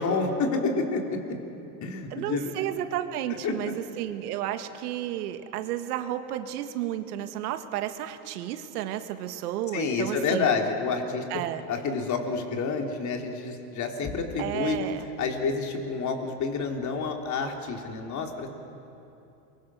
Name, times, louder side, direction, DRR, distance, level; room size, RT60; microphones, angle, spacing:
voice 1, 0.0-1.4 1.8-2.5 3.4-3.5 9.7-11.2 11.7-14.8 15.2-18.5, left 4 dB, 40° left, 3 dB, 3.4 m, -28 dB
voice 2, 2.1-10.5 11.3-11.7 14.4-15.1, right 12 dB, 75° right, 8 dB, 1.8 m, -32 dB
28.5 x 23.0 x 6.4 m, 2.9 s
supercardioid pair, 115°, 46 cm